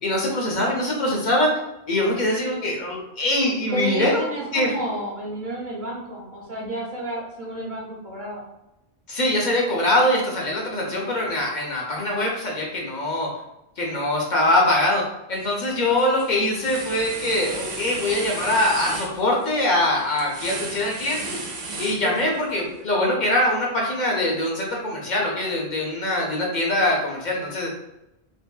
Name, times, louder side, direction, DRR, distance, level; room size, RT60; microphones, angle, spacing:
voice 1, 0.0-1.5 1.9-4.7 9.1-13.3 13.8-21.4 21.8-27.7, left 1 dB, 55° left, -2 dB, 0.7 m, -23 dB
voice 2, 3.7-8.4 22.0-22.2, right 1 dB, 55° right, -6 dB, 0.7 m, -31 dB
sound 1, 15.3-15.7 16.0-22.5, right 3 dB, 85° right, 0.8 m, -34 dB
2.6 x 2.6 x 2.2 m, 0.89 s
omnidirectional pair, 1.1 m